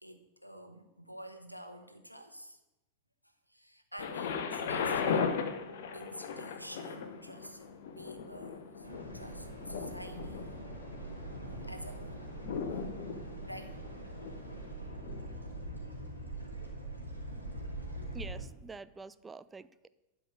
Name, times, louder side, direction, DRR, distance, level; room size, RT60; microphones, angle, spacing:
voice 1, 0.0-2.6 3.2-5.6 5.9-8.9 9.1-10.5 11.5-12.2 13.4-13.8, equal, 90° left, 7 dB, 1.0 m, -49 dB
Thunder, 4.0-15.8 16.6-16.7, left 6 dB, 55° left, 1.0 m, -38 dB
sound 1, 8.8-18.4, right 2 dB, 85° right, 2.6 m, -43 dB
voice 2, 18.1-19.9, right 4 dB, 15° right, 15 dB, 0.4 m, -47 dB
11.5 x 5.1 x 7.6 m, 1.0 s
figure-of-eight pair, 90°, 0 cm